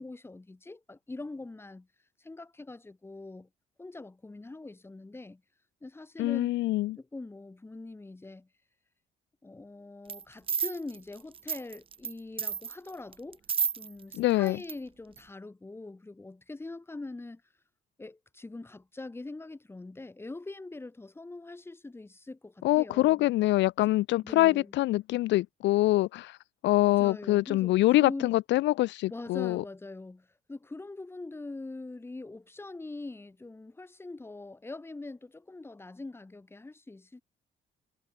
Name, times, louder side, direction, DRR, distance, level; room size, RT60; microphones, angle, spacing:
voice 1, 0.0-1.9 2.2-3.5 3.8-5.4 5.8-6.5 7.0-8.5 9.4-13.4 13.8-17.4 18.0-23.3 24.2-24.7 26.8-28.3 29.1-37.2, left 2 dB, 15° left, 2.0 m, -43 dB
voice 2, 6.2-7.0 14.1-14.6 22.6-26.4 26.6-29.6, left 17 dB, 75° left, 0.4 m, -25 dB
sound 1, 10.1-10.2 10.5-12.1 12.4-14.2 14.5-14.7 15.2-15.3, right 6 dB, 30° right, 0.7 m, -31 dB
cardioid pair, 140°, 19 cm